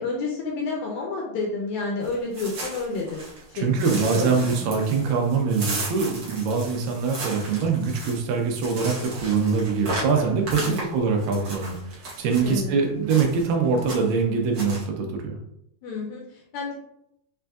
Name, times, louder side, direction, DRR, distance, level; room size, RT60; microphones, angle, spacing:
voice 1, 0.0-4.7 10.6-10.9 12.4-12.8 15.8-16.7, left 3 dB, 75° left, -1 dB, 1.8 m, -30 dB
sound 1, 2.0-3.4 3.8-12.6 13.1-13.5 13.8-14.2 14.5-14.8, right 2 dB, 65° right, 1.4 m, -35 dB
voice 2, 3.5-15.4, right 5 dB, 85° right, 2 dB, 2.4 m, -24 dB
6.3 x 2.5 x 2.3 m, 0.76 s
omnidirectional pair, 3.8 m